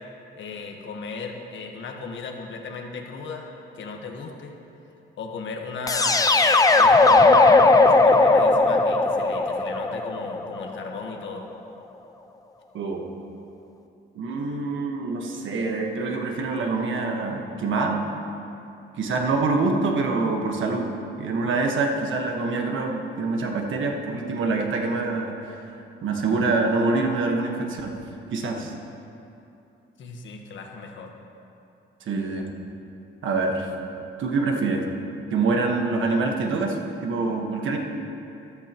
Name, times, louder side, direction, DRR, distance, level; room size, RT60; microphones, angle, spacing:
voice 1, 0.4-4.5 5.2-6.3 6.7-11.5 30.0-31.1, left 4 dB, 65° left, 2 dB, 1.3 m, -36 dB
sound 1, 5.9-10.8, left 3 dB, 15° left, 0.6 m, -17 dB
voice 2, 12.7-13.1 14.1-18.0 19.0-20.9 21.2-25.6 26.0-27.9 28.3-28.7 32.1-32.5 33.2-33.7 34.2-34.8 35.3-37.8, right 3 dB, 70° right, 2 dB, 1.4 m, -25 dB
14.0 x 12.0 x 3.0 m, 2.7 s
cardioid pair, 110°, 21 cm